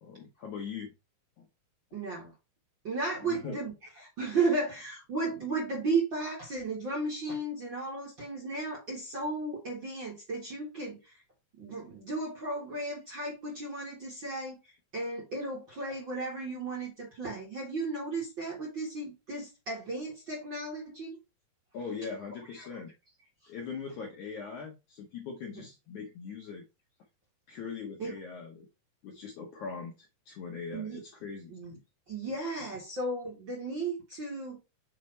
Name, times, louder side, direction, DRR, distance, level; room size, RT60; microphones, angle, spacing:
voice 1, 0.0-0.9 1.4-1.5 3.3-3.6 21.7-22.9 23.5-26.6 27.5-28.7 29.0-31.6, left 5 dB, 70° left, 1.8 m, -41 dB
voice 2, 1.9-2.3 2.8-3.7 4.0-11.2 11.6-14.6 14.9-21.2 22.6-22.7 28.0-28.1 30.7-31.0 31.5-31.8 32.1-34.6, right 3 dB, 45° right, 1.7 m, -34 dB
6.4 x 3.4 x 4.3 m
omnidirectional pair, 4.7 m